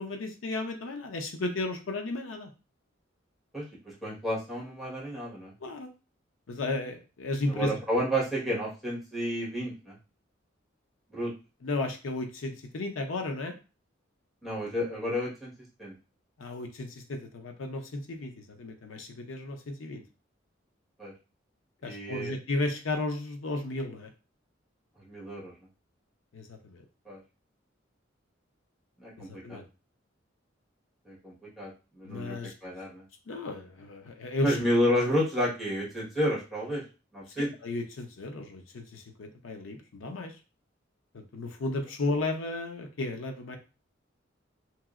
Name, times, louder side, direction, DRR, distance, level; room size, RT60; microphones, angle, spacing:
voice 1, 0.0-2.5 5.6-5.9 6.5-7.8 11.6-13.5 16.4-20.0 21.8-24.1 26.3-26.8 29.2-29.6 32.0-32.5 33.3-34.6 37.4-40.3 41.1-43.6, left 2 dB, 90° left, 4 dB, 0.6 m, -34 dB
voice 2, 3.5-5.5 7.5-9.9 11.1-11.3 14.4-15.5 15.8-15.9 21.0-21.1 21.8-22.3 25.1-25.5 27.0-27.2 29.0-29.6 31.0-33.0 34.4-36.8 37.1-37.5, equal, ahead, -6 dB, 1.4 m, -31 dB
2.9 x 2.9 x 2.4 m, 0.32 s
head